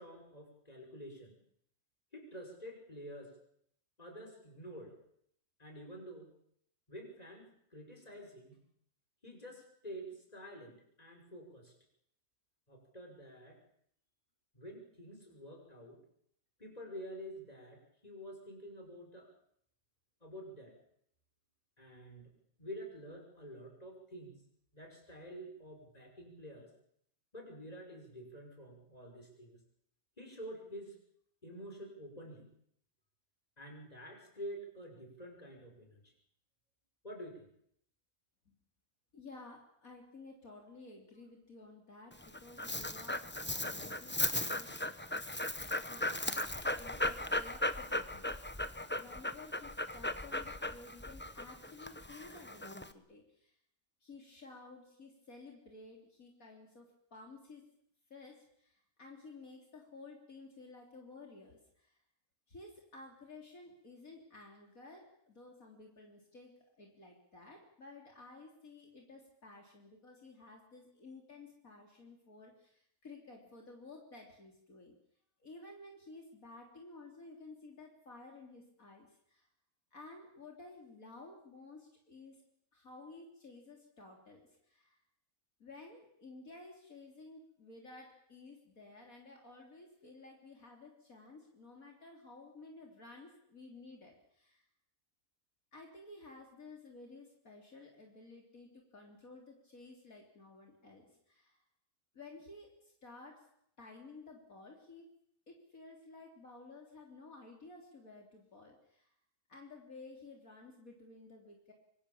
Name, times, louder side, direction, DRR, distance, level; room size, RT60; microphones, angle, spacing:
voice 1, 0.0-1.4 2.1-3.3 4.0-5.0 5.6-6.3 6.9-8.6 9.2-11.7 12.7-13.6 14.5-16.0 16.6-19.3 20.2-20.8 21.8-22.3 22.6-24.4 24.7-26.7 27.3-29.6 30.2-31.0 31.4-32.5 33.6-36.1 37.0-37.5, equal, 25° left, 2 dB, 6.1 m, -49 dB
voice 2, 39.1-44.7 45.9-48.3 48.9-53.5 54.0-57.7 58.1-61.9 62.5-75.0 75.4-79.5 79.9-82.4 82.7-85.0 85.6-94.6 95.7-101.6 102.1-103.5 103.8-105.1 105.5-109.1 109.5-111.7, left 3 dB, 65° left, 1 dB, 3.9 m, -54 dB
Dog, 42.1-52.9, left 1 dB, 10° left, 0.8 m, -37 dB
25.5 x 24.0 x 7.2 m, 0.70 s
omnidirectional pair, 1.6 m